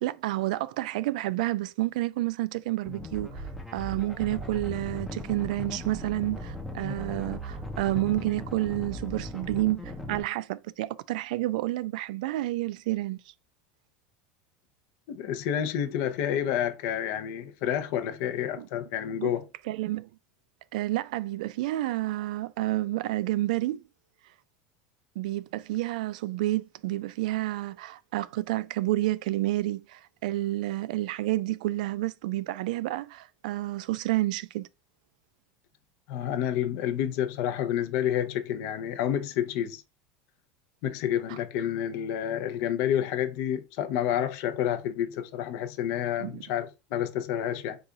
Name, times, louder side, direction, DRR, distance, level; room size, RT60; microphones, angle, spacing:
voice 1, 0.0-13.2 18.6-18.7 19.2-19.3 19.6-20.1 20.7-23.9 25.2-34.7 41.3-41.4 46.2-46.4, right 16 dB, 80° right, 0.3 m, -30 dB
sound 1, 2.9-10.2, left 1 dB, ahead, 0.5 m, -38 dB
voice 2, 15.1-19.4 36.1-39.8 40.8-47.8, left 10 dB, 55° left, 0.6 m, -29 dB
4.8 x 2.3 x 3.8 m
cardioid pair, 175°, 4 cm